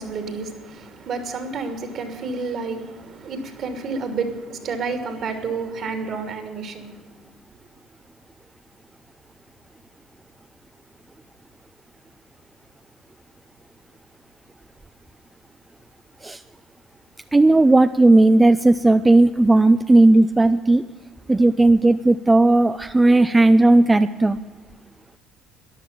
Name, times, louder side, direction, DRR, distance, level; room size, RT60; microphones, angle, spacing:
voice 1, 0.0-7.0, right 4 dB, 55° right, 2.8 m, -30 dB
voice 2, 17.3-20.9 21.3-24.4, right 2 dB, 15° right, 0.5 m, -15 dB
13.5 x 10.5 x 8.5 m
hypercardioid pair, 65°, 0 cm